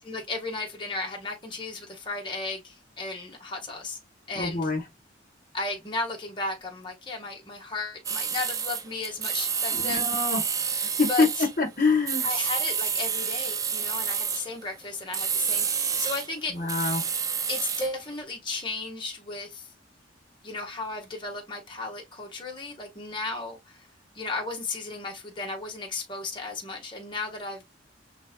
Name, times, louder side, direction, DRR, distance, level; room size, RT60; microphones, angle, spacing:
voice 1, 0.0-4.0 4.3-4.7 5.5-10.1 11.1-11.5 12.2-16.6 17.5-19.7 20.4-23.9 24.1-27.6, left 3 dB, 25° left, 1.4 m, -34 dB
voice 2, 4.3-4.8 9.7-10.4 11.0-11.3 11.6-12.3 16.5-17.0, left 4 dB, 45° left, 1.2 m, -25 dB
sound 1, 8.0-11.5 12.1-14.5 15.1-16.3 16.7-17.9, right 6 dB, 20° right, 0.3 m, -29 dB
5.2 x 3.5 x 2.2 m
head